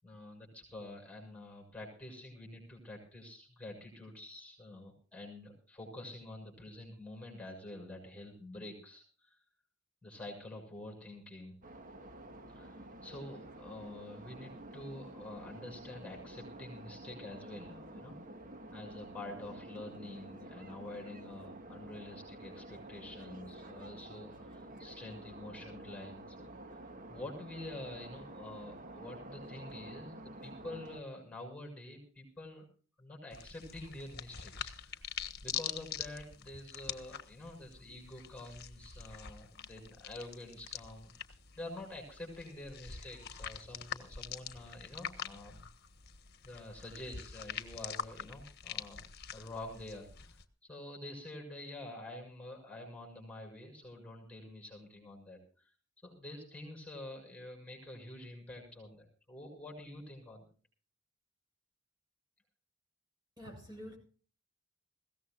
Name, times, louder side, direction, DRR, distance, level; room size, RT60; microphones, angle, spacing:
voice 1, 0.0-9.4 10.0-11.6 12.5-18.2 18.7-26.4 26.7-26.8 27.1-32.7 33.0-35.1 35.4-45.6 46.4-49.0 49.3-50.4 50.6-55.7 56.0-60.4, left 1 dB, 5° left, 6.4 m, -48 dB
sound 1, 11.6-31.0, right 1 dB, 40° right, 1.7 m, -49 dB
sound 2, 33.3-50.4, left 8 dB, 50° left, 1.4 m, -45 dB
voice 2, 63.4-64.0, equal, 20° right, 7.2 m, -47 dB
21.5 x 17.0 x 2.5 m
head